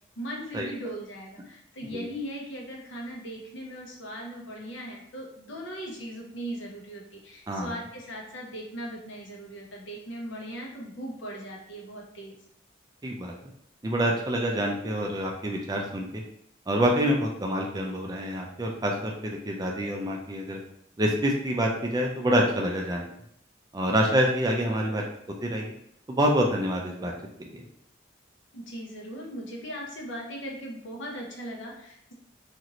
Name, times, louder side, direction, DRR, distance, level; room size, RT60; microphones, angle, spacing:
voice 1, 0.2-12.4 24.7-25.0 28.5-32.1, equal, 75° left, -1 dB, 0.8 m, -39 dB
voice 2, 13.0-13.3 13.8-16.2 16.7-20.6 21.0-23.1 23.7-25.0 25.4-25.7 26.1-27.1 27.4-27.6, equal, 20° right, 0 dB, 0.4 m, -26 dB
3.0 x 2.5 x 2.8 m, 0.71 s
head